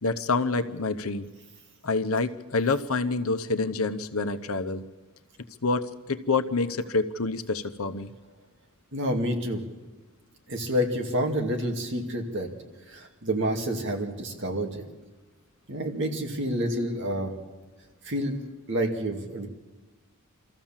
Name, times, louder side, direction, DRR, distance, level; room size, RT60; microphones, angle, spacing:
voice 1, 0.0-1.3 1.8-4.8 5.6-8.1, left 3 dB, 75° left, 9 dB, 0.9 m, -27 dB
voice 2, 8.9-9.6 10.5-12.5 12.9-14.9 15.7-17.3 18.0-18.3 18.7-19.5, equal, 55° right, 3 dB, 2.2 m, -28 dB
24.5 x 14.5 x 7.4 m, 1.2 s
head